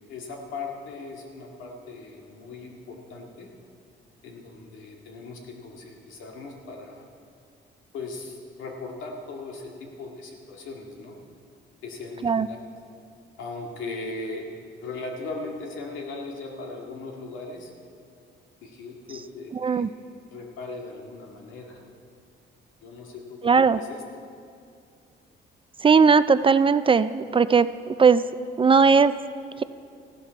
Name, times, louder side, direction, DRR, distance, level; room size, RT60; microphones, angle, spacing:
voice 1, 0.1-3.5 4.2-7.0 7.9-11.2 11.8-12.6 13.4-14.5 14.8-17.7 18.6-19.8 20.3-21.8 22.8-23.4 23.8-24.0, left 3 dB, 85° left, 0 dB, 2.0 m, -38 dB
voice 2, 19.5-19.9 23.4-23.8 25.8-28.2 28.6-29.2 29.6-29.7, right 5 dB, 25° right, 14 dB, 0.3 m, -18 dB
15.5 x 12.0 x 4.6 m, 2.3 s
cardioid pair, 90°, 20 cm